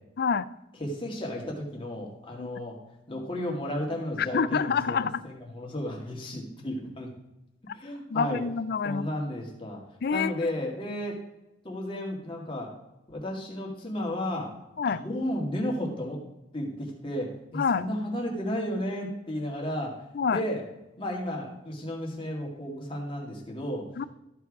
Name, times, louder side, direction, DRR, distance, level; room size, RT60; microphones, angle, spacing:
voice 1, 0.2-0.5 2.4-2.5 4.2-5.2 8.1-9.1 10.0-10.5 14.8-15.0 17.5-17.8 20.1-20.4 24.0-24.1, left 6 dB, 55° left, 16 dB, 0.4 m, -27 dB
voice 2, 0.8-2.8 3.1-7.1 7.7-8.4 8.8-9.8 10.1-11.2 11.6-12.7 13.1-14.5 14.8-16.2 16.5-20.0 20.3-20.6 21.0-23.8, left 1 dB, 25° left, -1 dB, 2.1 m, -33 dB
13.5 x 4.6 x 4.8 m, 0.92 s
head